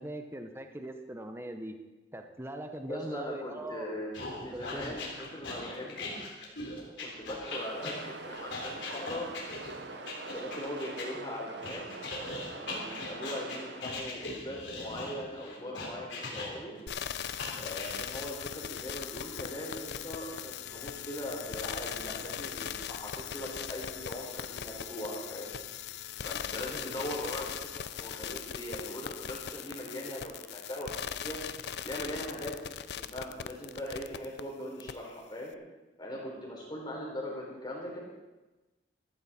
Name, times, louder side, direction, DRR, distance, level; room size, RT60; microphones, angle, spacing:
voice 1, 0.0-1.7 2.1-4.0 4.5-5.0, right 1 dB, 15° right, 6 dB, 0.9 m, -40 dB
voice 2, 2.9-6.1 7.0-11.9 12.5-16.8 17.6-25.5 26.2-30.9 31.2-31.4 31.8-32.6 33.1-35.5 36.0-38.0, equal, 25° left, -2 dB, 3.7 m, -40 dB
sound 1, 4.1-11.1 11.6-16.8 17.4-17.9, left 3 dB, 85° left, 3.5 m, -40 dB
sound 2, 7.5-13.8, right 4 dB, 70° right, 0.8 m, -44 dB
sound 3, 16.9-34.4 34.8-34.9, left 9 dB, 60° left, 0.4 m, -39 dB
14.5 x 13.5 x 4.2 m, 1.1 s
head